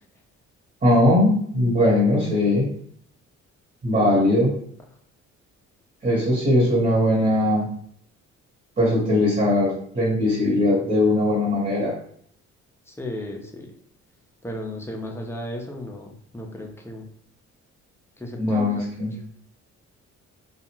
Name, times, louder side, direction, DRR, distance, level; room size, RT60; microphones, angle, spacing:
voice 1, 0.8-2.7 3.8-4.5 6.0-7.7 8.8-11.9 18.4-19.2, left 1 dB, 30° right, -6 dB, 1.2 m, -20 dB
voice 2, 12.9-13.7 14.4-17.0 18.2-18.8, left 1 dB, 10° left, 1 dB, 0.5 m, -34 dB
2.3 x 2.3 x 3.0 m, 0.62 s
cardioid pair, 90°, 30 cm